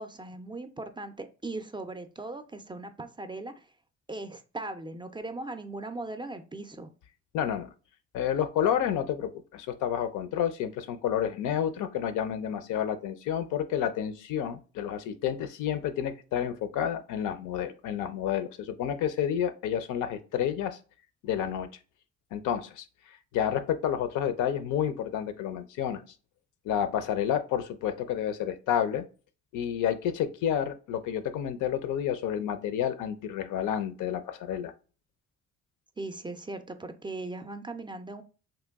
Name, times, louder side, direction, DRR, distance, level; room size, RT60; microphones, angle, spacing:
voice 1, 0.0-3.7 4.1-6.9 36.0-38.2, right 2 dB, 15° right, 8 dB, 0.3 m, -39 dB
voice 2, 7.3-7.7 8.1-20.8 21.2-21.7 22.3-26.0 26.6-29.0 29.5-34.7, left 9 dB, 85° left, 10 dB, 0.5 m, -30 dB
3.0 x 2.2 x 3.4 m, 0.35 s
cardioid pair, 90°, 30 cm